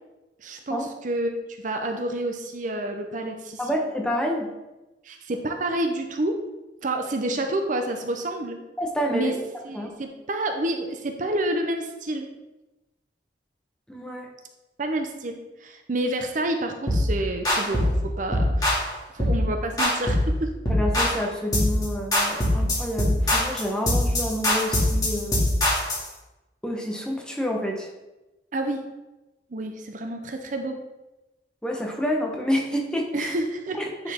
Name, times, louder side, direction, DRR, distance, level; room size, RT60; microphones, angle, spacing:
voice 1, 0.4-1.3 1.6-3.6 5.0-6.4 6.8-8.6 9.1-9.4 9.6-12.3 14.8-18.8 19.1-20.5 28.5-28.8 29.5-30.8 33.1-33.8 34.0-34.1, right 1 dB, 45° right, 5 dB, 0.6 m, -29 dB
voice 2, 3.6-4.5 8.8-9.3 9.7-9.9 13.9-14.3 20.7-25.5 26.6-27.9 31.6-33.3 33.8-33.9, equal, 5° left, 0 dB, 0.9 m, -28 dB
sound 1, 16.9-17.1 17.4-18.0 18.3-18.8 19.2-19.4 19.8-20.3 20.7-21.2 21.5-21.8 22.1-26.1, left 1 dB, 20° left, 2.2 m, -22 dB
9.6 x 4.5 x 3.5 m, 1.0 s
head